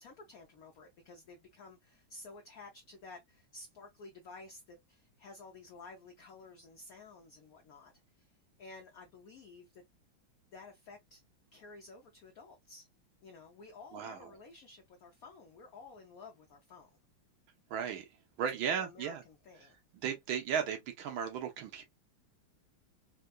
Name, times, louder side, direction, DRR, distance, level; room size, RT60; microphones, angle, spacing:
voice 1, 0.0-9.8 10.5-11.2 11.5-12.9 13.2-16.9 18.6-19.8, left 3 dB, 65° left, 0.9 m, -53 dB
voice 2, 13.9-14.3 17.7-18.1 18.4-19.2 19.9-21.8, right 7 dB, 85° right, 1.7 m, -35 dB
4.2 x 2.2 x 2.3 m
omnidirectional pair, 2.2 m